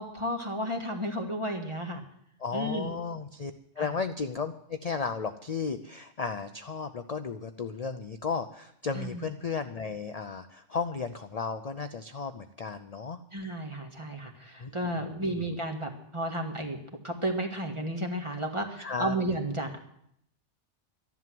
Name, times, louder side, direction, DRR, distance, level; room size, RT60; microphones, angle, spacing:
voice 1, 0.0-2.0 2.5-2.9 3.8-3.9 8.9-9.2 13.3-16.8 17.0-19.8, right 1 dB, 25° right, 2 dB, 1.9 m, -33 dB
voice 2, 2.4-13.2 14.6-15.3 18.8-19.2, left 5 dB, 40° left, 9 dB, 0.6 m, -34 dB
13.0 x 11.0 x 7.7 m, 0.72 s
omnidirectional pair, 1.2 m